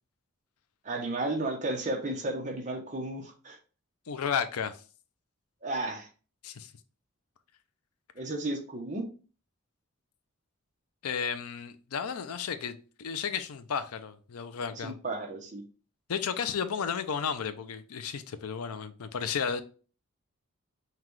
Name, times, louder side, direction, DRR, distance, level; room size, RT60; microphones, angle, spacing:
voice 1, 0.8-3.6 5.6-6.1 8.1-9.0 14.7-15.6, right 2 dB, 35° right, 0.9 m, -33 dB
voice 2, 4.1-4.8 6.4-6.7 11.0-15.0 16.1-19.6, left 7 dB, 85° left, 0.5 m, -33 dB
5.7 x 2.3 x 3.1 m
head